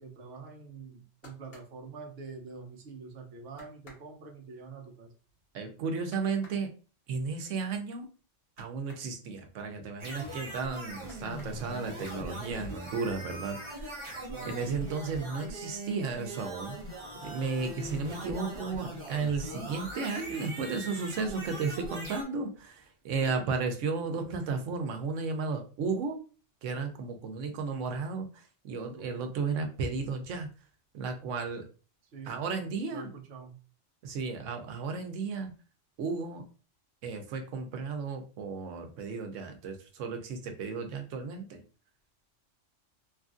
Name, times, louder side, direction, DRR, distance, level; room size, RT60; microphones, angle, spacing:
voice 1, 0.0-5.1 14.3-14.6 28.9-29.3 32.1-32.3 32.9-33.5, right 4 dB, 60° right, 4 dB, 0.9 m, -45 dB
sound 1, 0.8-2.8 3.1-3.2 3.5-9.1 9.5-10.6 11.0-12.1 12.5-13.1 13.4-14.1 14.4-14.5, left 2 dB, 55° left, 1.3 m, -58 dB
voice 2, 5.5-6.7 7.1-8.1 8.6-14.0 14.4-16.8 17.2-26.2 26.6-30.5 30.9-31.6 32.2-33.1 34.0-35.5 36.0-36.4 37.0-41.6, right 4 dB, 90° right, 5 dB, 1.0 m, -34 dB
sound 2, 10.0-22.2, right 1 dB, 30° right, 0.7 m, -41 dB
3.0 x 2.5 x 2.4 m, 0.36 s
omnidirectional pair, 1.3 m